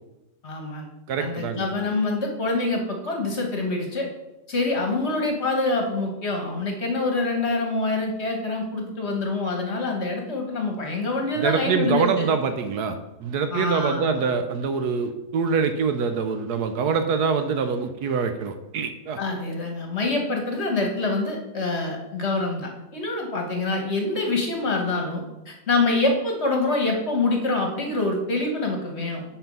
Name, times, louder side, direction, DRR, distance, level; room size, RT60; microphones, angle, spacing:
voice 1, 0.4-0.9 1.2-4.1 4.5-12.3 13.5-14.2 19.2-29.2, left 2 dB, 45° left, 2 dB, 1.2 m, -26 dB
voice 2, 1.1-1.7 11.4-19.2, right 5 dB, 70° right, 8 dB, 1.1 m, -25 dB
8.7 x 4.1 x 5.3 m, 0.97 s
omnidirectional pair, 1.8 m